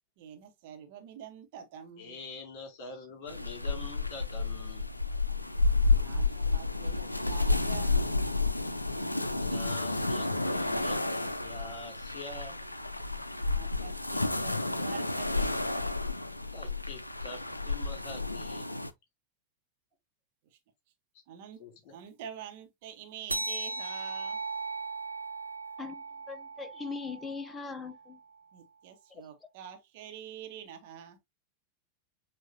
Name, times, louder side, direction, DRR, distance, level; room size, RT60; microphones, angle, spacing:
voice 1, 0.2-2.2 5.9-8.0 13.5-15.6 20.5-20.6 21.3-21.6 21.9-24.4 28.5-31.2, right 9 dB, 50° right, 1.1 m, -47 dB
voice 2, 2.0-4.8 9.3-12.7 16.5-18.7 21.6-21.9, left 3 dB, 45° left, 2.2 m, -45 dB
sound 1, 3.3-18.9, left 3 dB, 85° left, 0.4 m, -31 dB
sound 2, 23.3-28.2, right 3 dB, 85° right, 0.3 m, -38 dB
voice 3, 25.8-28.2 29.1-29.2, left 4 dB, 15° left, 0.7 m, -40 dB
7.3 x 2.6 x 2.7 m
figure-of-eight pair, 90°, 0 cm